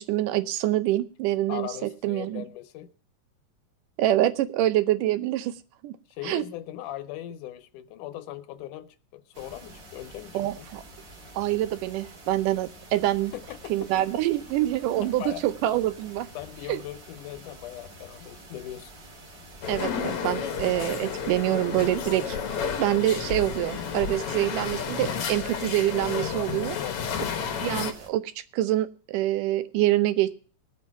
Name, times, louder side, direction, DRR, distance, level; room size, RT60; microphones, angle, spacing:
voice 1, 0.0-2.4 4.0-5.6 5.8-6.0 6.2-6.5 10.3-10.8 11.4-13.3 13.7-16.3 16.7-16.8 19.7-22.4 22.8-26.8 27.6-30.3, right 14 dB, 85° right, 2.4 m, -26 dB
voice 2, 1.5-2.9 6.1-10.7 13.3-13.9 15.0-15.5 16.4-18.9 26.7-27.4, left 13 dB, 80° left, 2.3 m, -39 dB
sound 1, 9.3-28.1, right 1 dB, 30° right, 1.9 m, -48 dB
sound 2, 19.6-27.9, left 7 dB, 60° left, 1.6 m, -31 dB
19.0 x 7.5 x 4.6 m
omnidirectional pair, 3.7 m